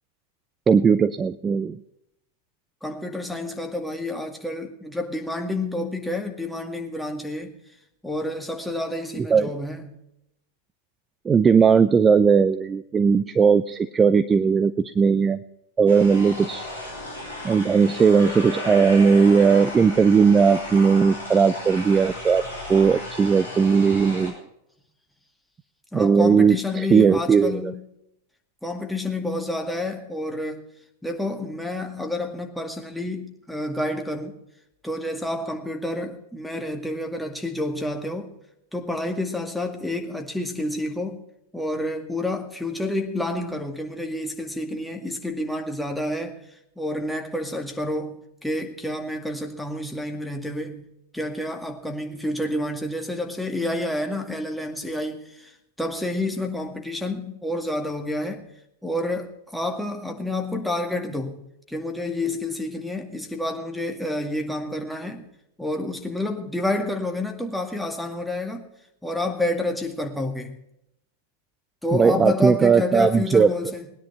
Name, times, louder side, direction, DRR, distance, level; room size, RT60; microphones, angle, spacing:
voice 1, 0.7-1.8 9.3-9.5 11.3-15.4 15.8-16.6 17.4-22.4 22.7-24.3 25.9-27.6 71.9-73.5, right 6 dB, 20° right, 0.5 m, -18 dB
voice 2, 2.8-7.6 8.0-10.0 25.9-27.8 28.6-30.6 31.0-34.4 34.8-38.3 38.7-41.2 41.5-46.4 46.8-50.9 51.1-58.5 58.8-65.3 65.6-68.7 69.0-70.6 71.8-73.9, left 1 dB, ahead, 2.1 m, -29 dB
sound 1, 15.9-24.3, left 1 dB, 80° left, 5.6 m, -34 dB
20.0 x 10.5 x 4.4 m
figure-of-eight pair, 90°, 0 cm